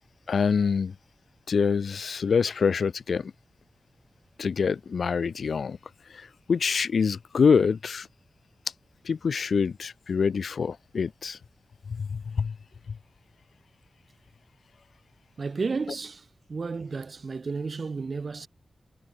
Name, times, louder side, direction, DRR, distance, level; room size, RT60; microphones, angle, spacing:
voice 1, 0.3-1.0 1.5-3.3 4.4-5.8 6.1-8.1 9.0-11.4 11.9-12.6 12.9-13.0, left 5 dB, 75° left, 0.5 m, -25 dB
voice 2, 15.4-18.5, right 4 dB, 55° right, 4.7 m, -32 dB
wide cardioid pair, 120°, 0 cm